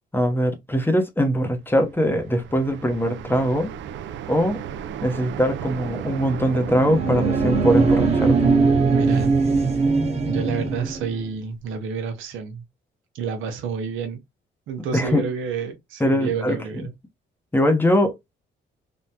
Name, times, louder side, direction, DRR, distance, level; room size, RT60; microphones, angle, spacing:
voice 1, 0.1-3.7 4.3-4.6 5.0-8.6 14.9-15.3 16.0-16.9 17.5-18.1, equal, 10° left, 0.7 m, -22 dB
sound 1, 1.7-11.7, right 9 dB, 70° right, 0.4 m, -34 dB
sound 2, 6.6-11.2, right 4 dB, 30° right, 1.1 m, -21 dB
voice 2, 8.9-9.3 10.2-12.6 13.1-14.2 14.7-16.9, right 6 dB, 90° right, 0.8 m, -29 dB
3.5 x 2.1 x 2.7 m
cardioid pair, 90°, 20 cm